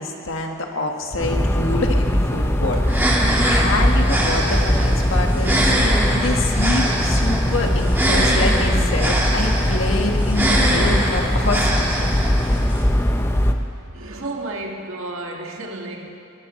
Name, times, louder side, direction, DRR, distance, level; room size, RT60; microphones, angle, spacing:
voice 1, 0.0-12.2, left 2 dB, 65° left, 2 dB, 1.6 m, -26 dB
sound 1, 1.2-13.5, left 1 dB, 10° left, 0.7 m, -20 dB
sound 2, 2.9-12.8, right 1 dB, 10° right, 1.7 m, -24 dB
voice 2, 13.9-16.1, right 2 dB, 75° right, 1 dB, 1.8 m, -32 dB
21.5 x 19.0 x 3.2 m, 2.8 s
head